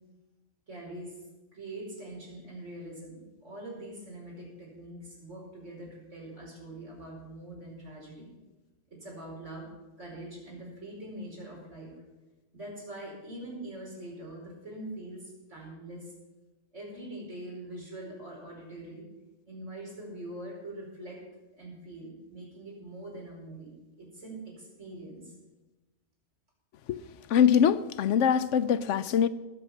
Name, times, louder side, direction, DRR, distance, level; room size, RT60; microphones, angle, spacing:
voice 1, 0.7-1.2 1.5-8.3 8.9-9.7 10.0-12.0 12.5-16.1 16.7-19.1 19.5-21.2 21.6-25.3, right 1 dB, 90° right, 5.2 m, -43 dB
voice 2, 27.3-29.3, left 8 dB, 85° left, 1.0 m, -23 dB
19.5 x 7.1 x 5.7 m
omnidirectional pair, 1.2 m